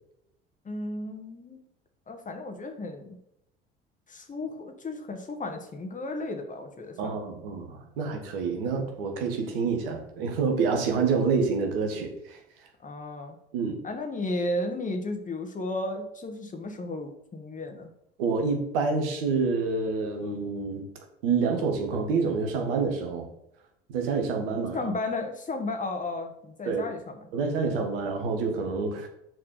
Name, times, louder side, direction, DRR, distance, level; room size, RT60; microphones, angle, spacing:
voice 1, 0.7-1.6 2.1-3.2 4.1-7.2 12.8-13.4 13.8-17.9 24.7-27.3, left 2 dB, 25° left, 5 dB, 1.7 m, -34 dB
voice 2, 7.0-12.4 13.5-13.8 18.2-20.9 21.2-23.3 23.9-24.9 26.7-26.9 27.3-29.1, right 4 dB, 70° right, 3 dB, 1.6 m, -27 dB
6.5 x 4.5 x 6.6 m, 0.78 s
figure-of-eight pair, 60°, 29 cm